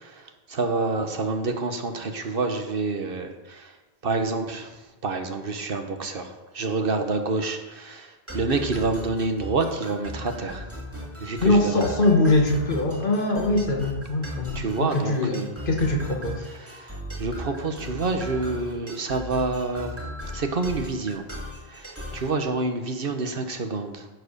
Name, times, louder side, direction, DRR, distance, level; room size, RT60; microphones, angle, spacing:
voice 1, 0.5-3.7 4.0-4.7 5.0-6.3 6.5-8.1 8.3-10.6 11.2-11.8 14.5-15.5 16.8-16.9 17.2-19.9 20.3-21.3 21.7-24.0, right 3 dB, 65° right, 6 dB, 1.2 m, -27 dB
sound 1, 8.3-22.3, left 1 dB, 15° right, 2.6 m, -37 dB
voice 2, 11.4-16.4, left 2 dB, 55° left, 2 dB, 1.7 m, -22 dB
14.5 x 4.8 x 6.5 m, 1.1 s
omnidirectional pair, 1.0 m